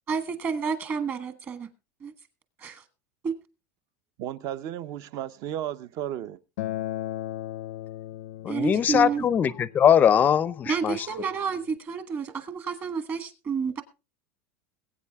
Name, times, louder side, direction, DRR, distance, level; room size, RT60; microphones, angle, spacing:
voice 1, 0.1-1.7 2.0-2.1 2.6-2.8 3.2-3.3 8.5-9.3 10.6-13.8, right 6 dB, 25° right, 1.5 m, -30 dB
voice 2, 4.2-6.4, right 11 dB, 45° right, 0.7 m, -34 dB
Acoustic guitar, 6.6-11.8, left 14 dB, 90° left, 0.6 m, -38 dB
voice 3, 8.4-11.0, left 9 dB, 20° left, 0.5 m, -21 dB
21.0 x 8.7 x 3.5 m
supercardioid pair, 160°, 8 cm